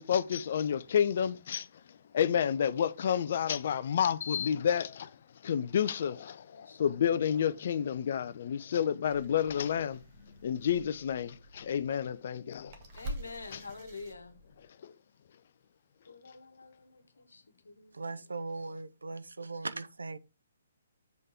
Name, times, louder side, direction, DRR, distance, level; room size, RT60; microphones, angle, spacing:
voice 1, 0.0-5.2 5.4-12.8 13.5-13.6 14.8-14.9, left 8 dB, 50° left, 0.6 m, -30 dB
sound 1, 9.1-14.7, right 1 dB, 40° right, 1.9 m, -47 dB
voice 2, 13.0-14.3 16.1-18.0, left 4 dB, 70° left, 1.5 m, -47 dB
voice 3, 17.9-20.2, right 3 dB, 75° right, 0.7 m, -39 dB
7.9 x 5.5 x 3.6 m
figure-of-eight pair, 130°, 0 cm